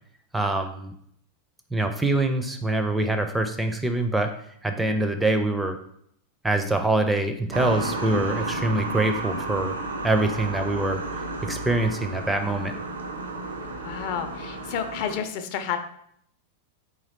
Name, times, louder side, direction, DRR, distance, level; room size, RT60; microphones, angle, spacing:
voice 1, 0.3-0.9 1.7-4.3 4.6-5.8 6.4-9.8 10.0-11.0 11.4-12.7, right 2 dB, 5° right, 6 dB, 0.4 m, -24 dB
sound 1, 7.5-15.2, right 2 dB, 75° right, 0.6 m, -32 dB
voice 2, 13.8-15.8, left 8 dB, 45° left, 8 dB, 0.5 m, -30 dB
3.9 x 2.9 x 4.1 m, 0.68 s
figure-of-eight pair, 90°, 0 cm